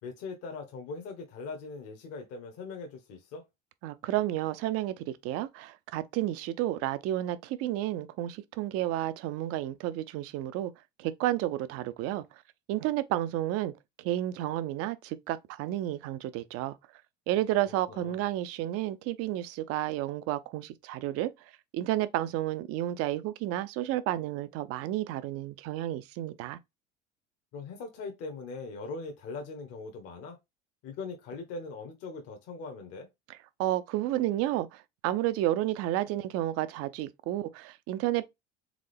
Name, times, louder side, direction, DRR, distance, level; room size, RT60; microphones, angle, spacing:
voice 1, 0.0-3.5 17.9-18.2 27.5-30.4 30.8-33.1, left 4 dB, 45° left, 1.1 m, -41 dB
voice 2, 3.8-10.7 11.0-12.2 12.7-13.7 14.0-16.7 17.3-21.3 21.7-26.6 33.6-38.3, right 14 dB, 40° right, 0.6 m, -31 dB
3.7 x 3.7 x 3.3 m
figure-of-eight pair, 75°, 35 cm